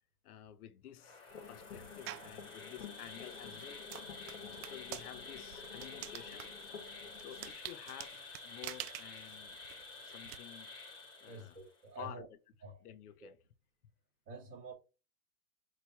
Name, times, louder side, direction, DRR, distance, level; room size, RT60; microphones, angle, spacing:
voice 1, 0.2-1.2 1.5-3.9 4.6-6.5 7.2-9.6 10.0-10.7 11.2-11.6 12.0-12.4 12.8-13.4, left 11 dB, 80° left, 0.8 m, -51 dB
Insect, 1.0-11.8, left 3 dB, 10° left, 0.6 m, -50 dB
sound 1, 1.3-7.5, left 6 dB, 60° left, 1.3 m, -52 dB
sound 2, 2.1-2.4 2.9-10.4, right 15 dB, 85° right, 0.5 m, -48 dB
voice 2, 11.2-12.3 12.6-12.8 13.2-13.3 14.3-14.7, right 3 dB, 25° right, 2.1 m, -48 dB
5.7 x 3.0 x 2.9 m
supercardioid pair, 170°, 45 cm